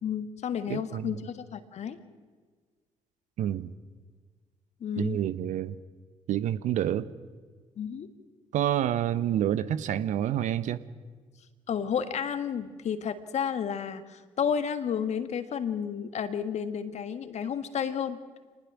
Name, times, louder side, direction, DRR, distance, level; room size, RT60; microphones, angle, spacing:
voice 1, 0.0-2.0 4.8-5.2 7.8-8.1 11.7-18.2, left 7 dB, 50° left, 10 dB, 1.7 m, -31 dB
voice 2, 0.7-1.1 3.4-3.7 5.0-5.7 6.3-7.1 8.5-10.8, right 11 dB, 55° right, 14 dB, 0.9 m, -28 dB
27.5 x 19.5 x 6.2 m, 1.5 s
figure-of-eight pair, 45°, 15 cm